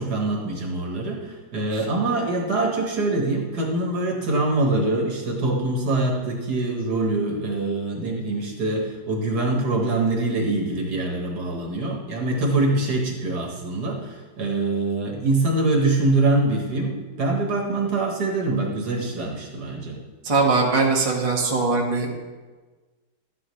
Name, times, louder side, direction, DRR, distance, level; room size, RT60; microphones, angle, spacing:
voice 1, 0.0-20.0, right 2 dB, 55° right, 1 dB, 1.8 m, -24 dB
voice 2, 20.2-22.1, right 3 dB, 20° right, -2 dB, 1.1 m, -21 dB
12.5 x 9.7 x 3.2 m, 1.3 s
omnidirectional pair, 2.2 m